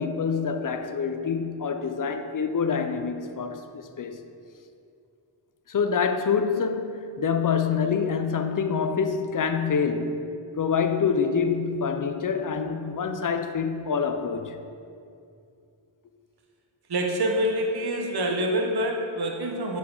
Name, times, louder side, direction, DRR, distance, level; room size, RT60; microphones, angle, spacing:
voice 1, 0.0-4.2 5.7-10.3 10.6-14.6, left 6 dB, 45° left, 0.4 m, -26 dB
voice 2, 16.9-19.8, equal, 50° right, 0.8 m, -26 dB
6.9 x 5.0 x 3.8 m
wide cardioid pair, 80°, 49 cm